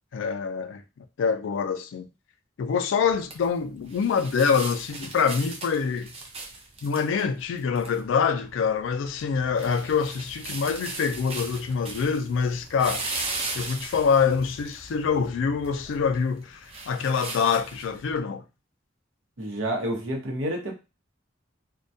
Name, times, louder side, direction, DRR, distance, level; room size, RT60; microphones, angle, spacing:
voice 1, 0.1-0.8 1.2-2.1 2.6-6.1 6.8-13.0 13.5-18.4, left 6 dB, 75° left, 0.3 m, -25 dB
sound 1, 3.0-18.2, right 3 dB, 30° right, 0.5 m, -38 dB
voice 2, 19.4-20.7, right 1 dB, 85° right, 0.8 m, -29 dB
2.2 x 2.1 x 2.6 m
head